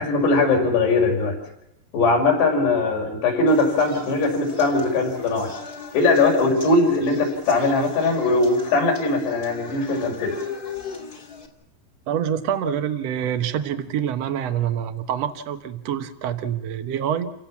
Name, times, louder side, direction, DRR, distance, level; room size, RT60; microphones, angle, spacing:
voice 1, 0.0-1.4 1.9-5.5 5.9-10.4, left 3 dB, 70° left, 1 dB, 7.3 m, -20 dB
sound 1, 3.5-11.5, left 6 dB, 25° left, 2.3 m, -36 dB
voice 2, 12.1-17.3, right 9 dB, 70° right, 9 dB, 1.5 m, -26 dB
29.5 x 17.0 x 7.3 m, 0.82 s
omnidirectional pair, 5.0 m